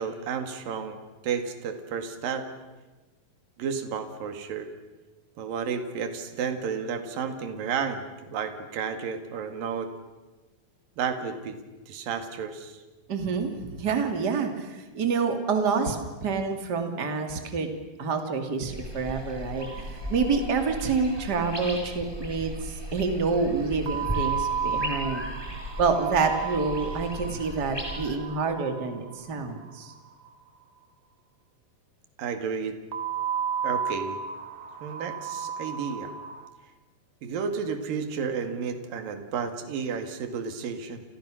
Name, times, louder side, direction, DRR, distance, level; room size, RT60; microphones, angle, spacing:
voice 1, 0.0-2.5 3.6-4.7 5.4-9.9 11.0-11.6 11.9-12.8 32.2-32.8 33.6-34.2 34.8-36.1 37.2-41.0, right 6 dB, 70° right, 7 dB, 3.8 m, -32 dB
voice 2, 13.1-17.7 18.0-25.3 25.8-29.9, right 4 dB, 30° right, 5 dB, 2.8 m, -27 dB
sound 1, 18.7-28.1, left 1 dB, 5° right, 5.7 m, -37 dB
sound 2, 19.6-20.6 20.9-21.0 21.2-21.3 23.9-30.0 32.9-36.5, right 7 dB, 45° right, 1.9 m, -33 dB
29.5 x 29.5 x 6.4 m, 1.2 s
omnidirectional pair, 4.2 m